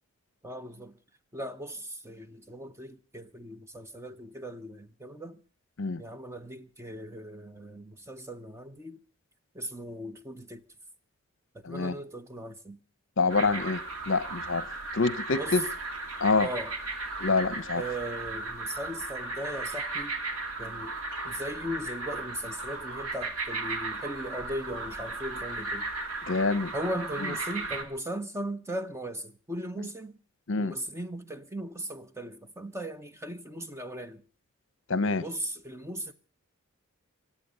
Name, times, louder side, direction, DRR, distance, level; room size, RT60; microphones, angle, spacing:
voice 1, 0.4-1.0 1.3-5.4 6.0-9.0 9.5-10.6 11.5-12.8 15.3-15.6 16.4-16.7 17.7-20.1 20.6-21.0 21.2-25.9 26.7-30.2 30.6-34.2 35.2-36.1, right 1 dB, 10° right, 0.7 m, -38 dB
voice 2, 11.6-12.0 13.2-14.7 14.9-15.6 16.2-16.5 17.2-17.8 26.3-26.7 30.5-30.7 34.9-35.2, left 4 dB, 60° left, 0.8 m, -26 dB
sound 1, 13.3-27.8, right 3 dB, 80° right, 2.2 m, -36 dB
24.5 x 8.6 x 6.7 m
head